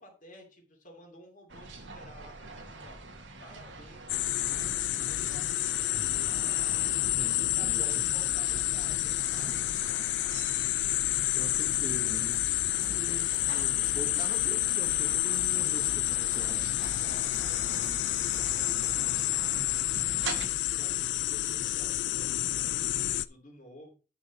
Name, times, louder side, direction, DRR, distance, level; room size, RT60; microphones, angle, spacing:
voice 1, 0.0-3.0 3.4-6.8 7.5-9.5 12.7-13.7 17.0-20.1 20.7-23.9, left 1 dB, 45° left, 2.7 m, -53 dB
sound 1, 1.5-20.5, right 3 dB, 85° right, 1.7 m, -45 dB
sound 2, 4.1-23.3, left 14 dB, 65° left, 0.4 m, -29 dB
voice 2, 7.1-8.0 9.2-10.1 11.3-12.4 12.8-16.8, right 1 dB, 25° right, 1.0 m, -43 dB
sound 3, 11.9-19.4, right 1 dB, 50° right, 1.7 m, -47 dB
9.5 x 6.2 x 4.1 m
head